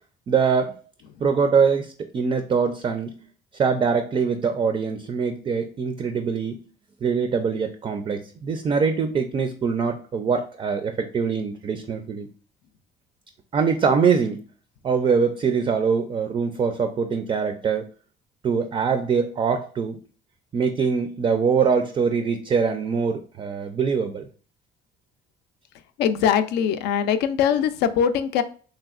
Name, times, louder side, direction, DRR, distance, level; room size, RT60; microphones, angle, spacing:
voice 1, 0.3-0.7 1.2-3.2 3.5-6.7 7.0-12.3 13.5-14.4 14.8-17.9 18.4-20.0 20.5-24.3, right 5 dB, 30° right, 7 dB, 0.3 m, -23 dB
voice 2, 26.0-28.4, left 8 dB, 85° left, 10 dB, 0.4 m, -22 dB
3.1 x 2.7 x 2.4 m, 0.40 s
cardioid pair, 110°, 17 cm